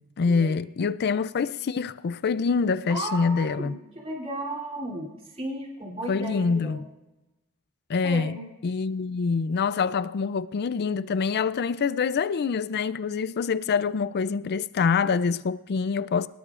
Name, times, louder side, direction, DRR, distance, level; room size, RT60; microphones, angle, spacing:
voice 1, 0.0-3.7 6.1-6.8 7.9-8.4 8.6-16.3, left 5 dB, 50° left, 0.4 m, -25 dB
voice 2, 2.9-6.8 8.0-8.4, right 1 dB, 30° right, 3.0 m, -35 dB
25.5 x 18.5 x 2.5 m
head